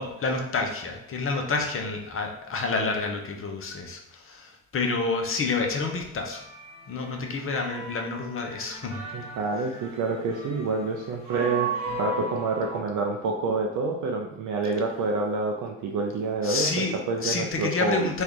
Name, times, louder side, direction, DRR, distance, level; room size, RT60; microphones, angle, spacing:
voice 1, 0.0-6.4 6.9-9.0 16.4-17.0 17.2-18.2, left 4 dB, 35° left, 3 dB, 0.7 m, -29 dB
sound 1, 6.2-12.8, right 3 dB, 70° right, 1.1 m, -36 dB
voice 2, 9.1-11.7 12.0-18.1, right 3 dB, 50° right, 1 dB, 0.5 m, -28 dB
3.1 x 2.3 x 3.5 m, 0.77 s
figure-of-eight pair, 40°, 40 cm